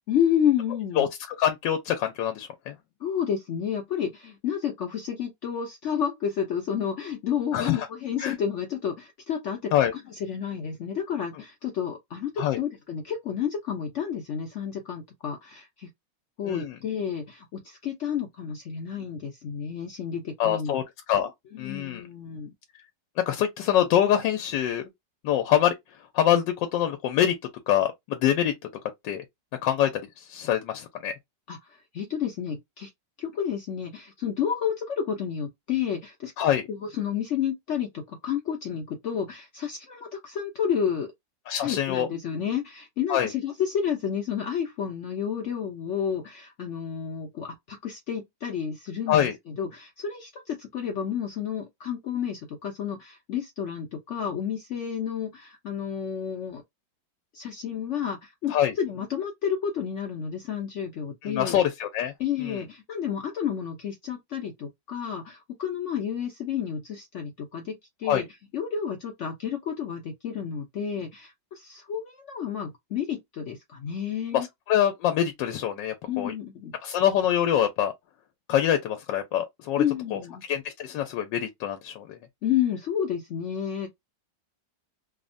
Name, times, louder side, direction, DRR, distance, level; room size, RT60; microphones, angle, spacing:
voice 1, 0.1-1.1 3.0-15.9 16.4-20.8 21.5-22.5 31.5-32.9 33.2-36.3 36.7-41.1 41.6-56.6 57.3-61.6 62.2-68.3 68.5-74.5 76.1-76.8 79.8-80.4 82.4-83.9, left 8 dB, 70° left, 0.7 m, -30 dB
voice 2, 1.0-2.8 7.5-7.9 8.2-8.3 9.7-9.9 12.4-12.6 16.4-16.8 20.4-20.8 21.1-21.3 21.6-22.0 23.2-24.8 25.2-25.7 26.1-27.3 27.7-28.5 29.0-29.2 29.6-29.9 30.2-31.1 36.4-36.7 41.5-42.1 43.1-43.3 49.1-49.3 58.5-58.7 61.2-62.1 62.4-62.6 68.0-68.2 74.3-76.3 76.8-77.9 78.5-79.8 80.1-80.2 80.5-82.2, left 10 dB, 85° left, 1.3 m, -25 dB
3.4 x 2.1 x 2.5 m
omnidirectional pair, 1.9 m